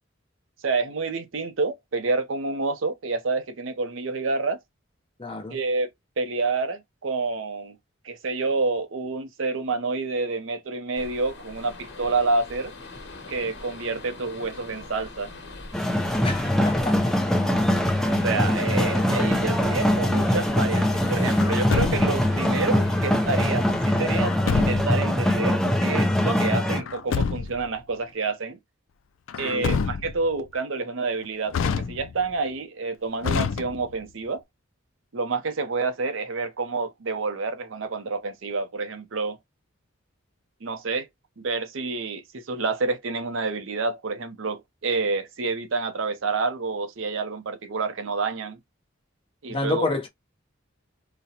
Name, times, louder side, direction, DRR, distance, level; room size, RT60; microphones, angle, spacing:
voice 1, 0.6-4.6 5.5-5.9 6.2-7.8 8.0-12.7 13.3-15.3 18.2-28.6 29.4-34.4 35.1-39.4 40.6-41.1 41.4-48.6 49.4-49.9, right 3 dB, 75° right, 0.6 m, -28 dB
voice 2, 5.2-5.6 16.2-17.1 29.4-29.8 49.5-50.1, left 2 dB, 25° left, 0.8 m, -29 dB
sound 1, 10.9-24.2, left 3 dB, 60° left, 1.1 m, -42 dB
sound 2, 15.7-26.8, left 1 dB, 5° left, 0.4 m, -22 dB
Truck, 21.4-22.4 24.2-25.1 26.7-27.7 29.3-30.3 31.5-32.3 33.2-34.1, left 5 dB, 75° left, 0.4 m, -28 dB
4.0 x 2.1 x 2.7 m
head